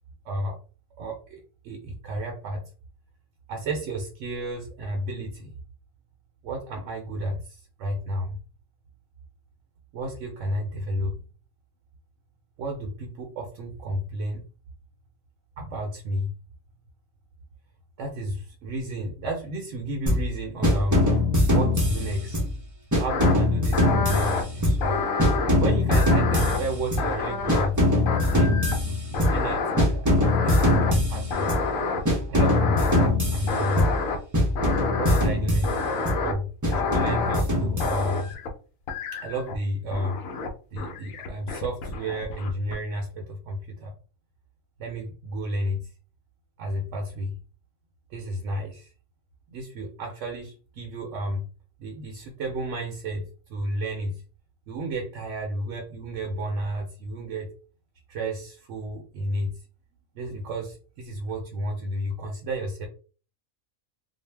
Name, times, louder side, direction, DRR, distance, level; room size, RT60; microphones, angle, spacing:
voice 1, 0.2-0.6 1.0-1.4 1.6-2.6 3.5-5.5 6.4-8.4 9.9-11.2 12.6-14.4 15.6-16.3 18.0-21.1 21.5-22.4 22.9-25.0 25.6-27.8 28.3-31.5 32.3-33.9 35.0-35.9 36.2-38.4 39.1-40.3 40.7-43.9 44.8-45.9 46.6-47.4 48.1-48.9 49.5-51.5 51.8-54.2 54.7-57.5 58.1-59.5 60.1-62.9, right 1 dB, 70° right, 2 dB, 0.9 m, -32 dB
sound 1, 20.1-20.3 20.6-22.6 22.9-24.9 25.2-27.1 27.5-29.5 29.8-31.7 32.1-34.1 34.3-36.2 36.6-38.3, left 1 dB, 25° right, 0.4 m, -23 dB
sound 2, 23.1-23.3 23.7-24.4 24.8-25.5 25.9-27.8 28.1-28.9 29.1-29.8 30.2-30.9 31.3-32.0 32.4-33.1 33.5-34.2 34.6-35.3 35.6-36.3 36.7-37.4 37.8-38.5 38.9-39.6 39.9-40.5 40.8-42.8, left 4 dB, 80° left, 1.0 m, -28 dB
2.6 x 2.0 x 3.2 m, 0.37 s
omnidirectional pair, 1.4 m